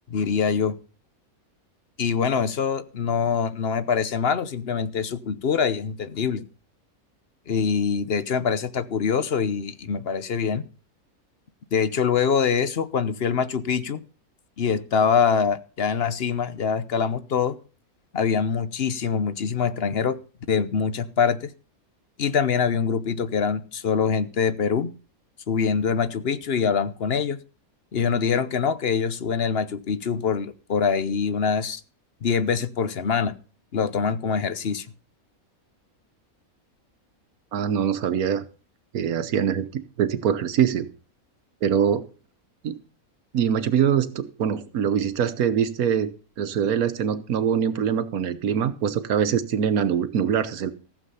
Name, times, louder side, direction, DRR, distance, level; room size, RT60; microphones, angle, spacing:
voice 1, 0.1-0.8 2.0-6.4 7.5-10.6 11.7-14.0 14.6-17.5 18.1-20.2 20.5-21.5 22.2-24.9 25.5-27.4 27.9-31.8 32.2-33.3 33.7-34.9, left 6 dB, 50° left, 13 dB, 1.0 m, -24 dB
voice 2, 37.5-38.4 38.9-40.9 41.6-42.1 42.6-42.8 43.3-46.1 46.4-50.7, right 8 dB, 85° right, 13 dB, 1.4 m, -23 dB
15.0 x 7.6 x 5.5 m, 0.38 s
omnidirectional pair, 1.5 m